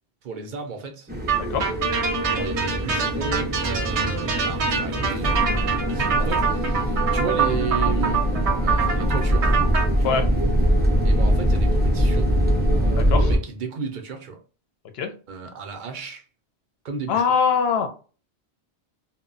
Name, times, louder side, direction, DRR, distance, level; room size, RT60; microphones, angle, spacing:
voice 1, 0.2-1.1 2.2-8.2 8.6-9.6 10.0-10.3 11.0-12.3 12.7-14.4 15.3-16.2 16.8-17.3, right 5 dB, 55° right, 0.6 m, -33 dB
sound 1, 1.1-13.4, equal, 15° right, 0.3 m, -24 dB
sound 2, 1.3-9.8, right 6 dB, 80° right, 0.9 m, -25 dB
voice 2, 1.4-1.7 10.0-10.2 12.9-13.3 15.0-15.1 17.1-17.9, left 6 dB, 70° left, 0.8 m, -22 dB
sound 3, 5.2-13.0, equal, 50° left, 0.4 m, -27 dB
2.1 x 2.1 x 3.7 m
omnidirectional pair, 1.2 m